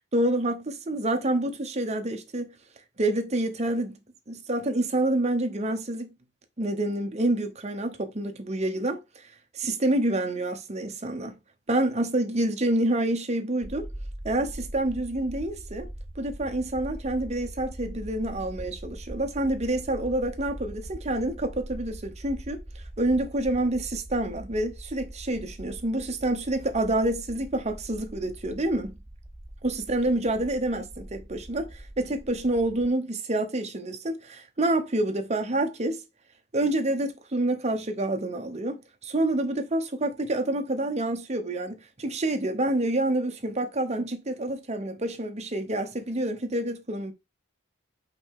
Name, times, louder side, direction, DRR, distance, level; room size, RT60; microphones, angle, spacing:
voice 1, 0.1-2.5 3.0-4.0 4.3-6.1 6.6-9.2 9.5-11.4 11.7-13.9 14.2-15.9 16.2-28.9 29.6-36.0 36.5-47.1, right 1 dB, 30° right, 0.9 m, -28 dB
sound 1, 13.6-32.9, right 1 dB, 10° right, 0.5 m, -42 dB
5.7 x 4.7 x 3.6 m
head